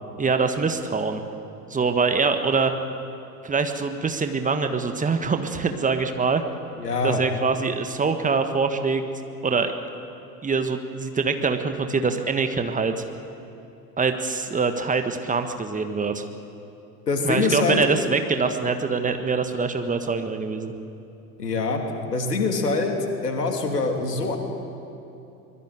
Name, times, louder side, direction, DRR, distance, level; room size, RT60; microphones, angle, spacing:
voice 1, 0.2-1.2 1.7-2.7 3.4-6.4 7.0-9.0 9.4-9.7 10.4-13.0 14.0-16.2 17.2-20.7, right 4 dB, 15° right, 7 dB, 1.6 m, -24 dB
voice 2, 6.8-7.2 17.1-17.8 21.4-21.8 22.1-23.0 23.2-24.4, left 3 dB, 75° left, 3 dB, 3.2 m, -24 dB
24.5 x 21.0 x 9.2 m, 2.7 s
figure-of-eight pair, 80°, 48 cm